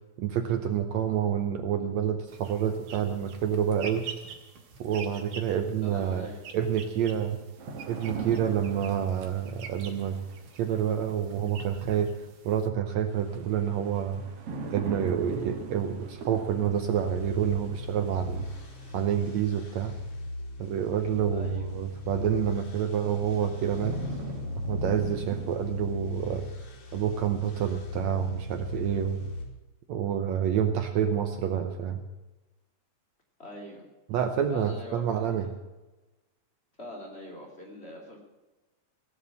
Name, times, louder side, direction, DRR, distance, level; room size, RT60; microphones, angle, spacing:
voice 1, 0.2-4.1 4.8-6.3 6.5-7.4 7.9-10.2 10.6-12.2 12.5-14.2 14.7-18.5 18.9-19.9 20.6-24.0 24.7-26.5 26.9-29.2 29.9-32.0 34.1-35.5, right 9 dB, 70° right, 7 dB, 1.9 m, -28 dB
sound 1, 2.3-12.7, right 6 dB, 90° right, 3.4 m, -45 dB
voice 2, 5.8-6.4 21.3-21.7 33.4-33.9 34.5-35.4 36.8-38.2, left 1 dB, 20° left, -1 dB, 2.9 m, -43 dB
sound 2, 7.6-10.7 13.1-19.4 22.0-22.1 22.7-25.5, right 3 dB, 55° right, 2.3 m, -40 dB
sound 3, 17.0-29.4, left 2 dB, 70° left, 4.4 m, -38 dB
16.5 x 8.2 x 8.1 m, 1.1 s
omnidirectional pair, 3.6 m